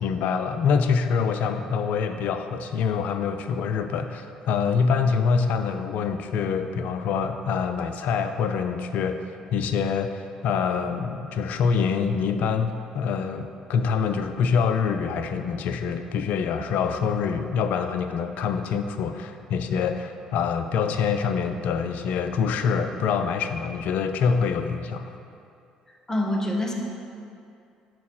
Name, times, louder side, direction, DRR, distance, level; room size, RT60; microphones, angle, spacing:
voice 1, 0.0-9.2 9.5-25.1, left 6 dB, 70° left, 8 dB, 0.4 m, -25 dB
voice 2, 26.1-26.7, left 1 dB, 20° left, 0 dB, 1.1 m, -25 dB
6.0 x 4.7 x 4.2 m, 2.5 s
hypercardioid pair, 65°, 3 cm